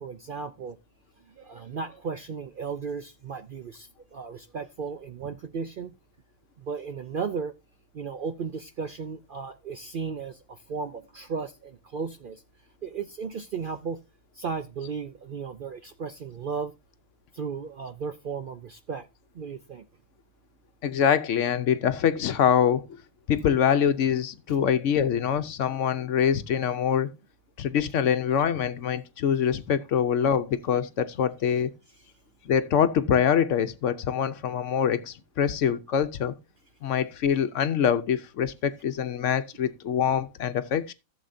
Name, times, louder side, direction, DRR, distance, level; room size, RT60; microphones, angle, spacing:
voice 1, 0.0-0.8 1.3-5.9 6.6-7.5 7.9-12.4 12.8-14.0 14.3-16.7 17.3-19.1 19.3-19.8 24.5-24.6, right 5 dB, 60° right, 0.5 m, -35 dB
voice 2, 20.8-22.9 23.3-27.1 27.6-31.7 32.5-36.3 36.8-40.9, left 8 dB, 65° left, 1.0 m, -24 dB
15.0 x 7.1 x 2.6 m
omnidirectional pair, 1.4 m